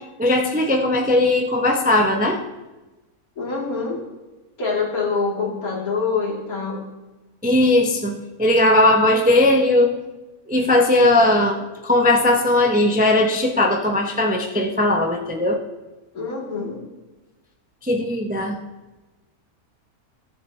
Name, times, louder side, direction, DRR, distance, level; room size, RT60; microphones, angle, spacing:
voice 1, 0.2-2.4 7.4-9.9 10.5-11.6 11.8-15.6 17.8-18.6, left 1 dB, 10° right, 1 dB, 0.5 m, -18 dB
voice 2, 3.4-4.0 4.6-6.8 16.1-16.8, left 4 dB, 75° left, -3 dB, 2.7 m, -25 dB
15.5 x 7.1 x 3.2 m, 1.1 s
omnidirectional pair, 1.5 m